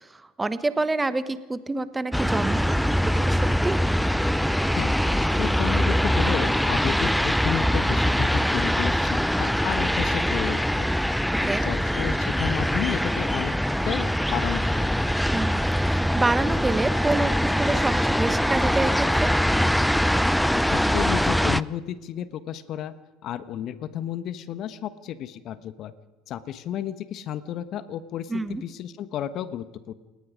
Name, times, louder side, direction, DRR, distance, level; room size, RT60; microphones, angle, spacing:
voice 1, 0.1-3.8 11.3-11.6 15.3-19.3 28.3-28.6, right 3 dB, 15° right, 13 dB, 1.2 m, -28 dB
sound 1, 2.1-21.6, equal, ahead, 0.6 m, -23 dB
voice 2, 5.4-10.9 11.4-13.5 13.8-14.9 20.5-22.9 23.2-25.9 26.3-29.9, left 10 dB, 50° left, 12 dB, 1.2 m, -32 dB
29.0 x 18.0 x 5.2 m, 1.2 s
hypercardioid pair, 70°, 0 cm